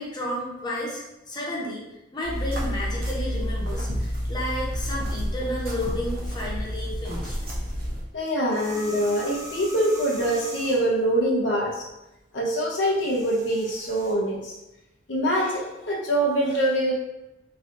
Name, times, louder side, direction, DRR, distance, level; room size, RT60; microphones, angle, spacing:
voice 1, 0.0-1.8 2.1-7.4, left 1 dB, 25° left, -4 dB, 0.6 m, -32 dB
sound 1, 2.2-8.0, equal, 55° right, 0.7 m, -29 dB
voice 2, 8.1-11.8 12.3-14.5 15.1-16.9, right 1 dB, 80° left, -2 dB, 0.7 m, -24 dB
sound 2, 8.4-11.0 12.8-14.1, right 1 dB, 20° right, 0.5 m, -40 dB
3.1 x 2.7 x 2.5 m, 0.93 s
head